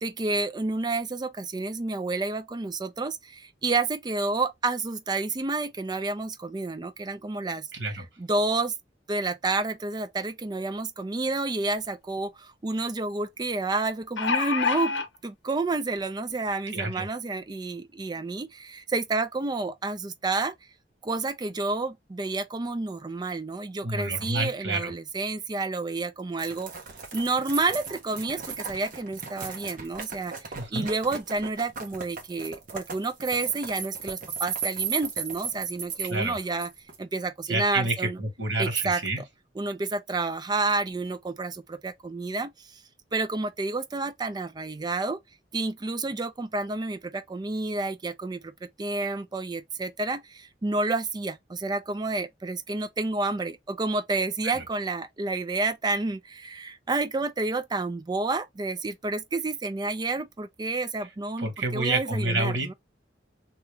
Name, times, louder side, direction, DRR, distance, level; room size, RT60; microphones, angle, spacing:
voice 1, 0.0-3.1 3.6-7.6 8.3-8.7 9.1-12.3 12.6-14.9 15.4-18.5 18.9-20.5 21.1-26.7 27.1-28.4 28.7-30.3 30.7-36.7 37.1-38.2 38.6-39.0 39.6-41.5 41.8-42.5 43.1-45.2 45.5-47.0 47.3-48.4 48.8-50.2 50.6-51.3 51.6-56.2 56.6-62.7, right 3 dB, 25° right, 0.4 m, -29 dB
voice 2, 7.7-8.1 16.7-17.1 23.8-24.9 30.5-30.9 36.1-36.4 37.5-39.2 54.4-54.6 61.4-62.7, right 2 dB, 85° right, 1.6 m, -29 dB
sound 1, 11.7-11.8 12.2-12.3 13.9-15.1 16.0-16.1 16.5-16.6, left 5 dB, 75° left, 0.7 m, -26 dB
sound 2, 26.4-37.0, right 6 dB, 50° right, 1.1 m, -36 dB
3.0 x 2.8 x 3.4 m
head